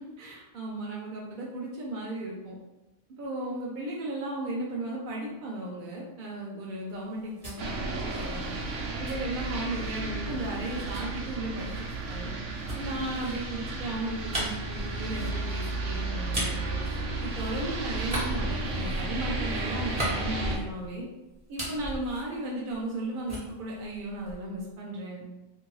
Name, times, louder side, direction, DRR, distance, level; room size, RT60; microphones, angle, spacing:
voice 1, 0.0-2.5 3.2-8.5 9.0-12.3 12.7-16.8 17.2-21.1 21.5-25.3, right 2 dB, 55° right, -3 dB, 0.6 m, -35 dB
sound 1, 7.0-10.0 10.9-17.6 18.0-21.0 21.3-23.0 23.3-24.6, equal, 25° right, 1.1 m, -38 dB
sound 2, 7.6-20.6, right 2 dB, 85° right, 1.0 m, -33 dB
2.6 x 2.6 x 3.0 m, 1.0 s
omnidirectional pair, 1.2 m